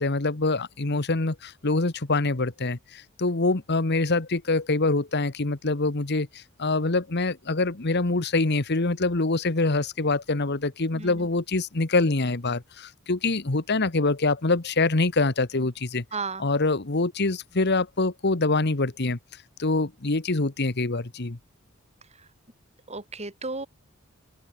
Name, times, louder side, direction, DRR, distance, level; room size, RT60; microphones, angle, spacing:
voice 1, 0.0-16.0 16.4-19.2 19.6-21.4, left 3 dB, 55° left, 1.4 m, -25 dB
voice 2, 10.9-11.3 16.1-16.5 22.2-22.3 22.9-23.7, right 3 dB, 30° right, 5.9 m, -34 dB
open air
head